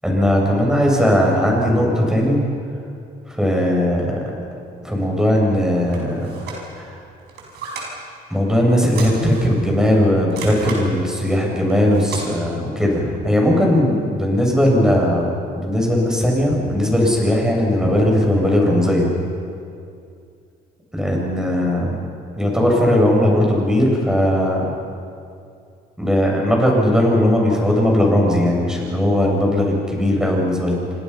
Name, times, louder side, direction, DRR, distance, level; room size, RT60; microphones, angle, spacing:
voice 1, 0.0-2.4 3.3-4.1 4.8-7.0 8.3-19.1 20.9-22.0 22.3-24.6 26.0-30.8, left 1 dB, 5° right, -2 dB, 7.4 m, -18 dB
sound 1, 5.9-6.6 7.2-7.9 8.9-9.6 10.3-10.8 11.7-12.3, right 4 dB, 75° right, 6.2 m, -33 dB
29.0 x 25.5 x 5.8 m, 2.5 s
cardioid pair, 110°, 17 cm